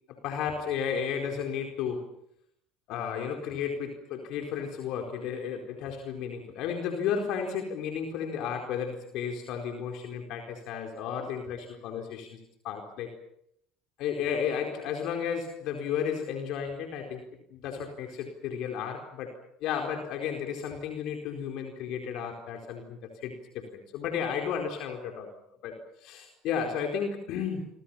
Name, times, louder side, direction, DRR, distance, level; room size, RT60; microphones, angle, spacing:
voice 1, 0.2-2.1 2.9-12.4 12.6-13.1 14.0-17.2 17.5-19.3 19.6-25.3 25.6-27.7, left 7 dB, 65° left, 3 dB, 4.3 m, -33 dB
29.0 x 25.5 x 5.8 m, 0.72 s
hypercardioid pair, 80°, 0 cm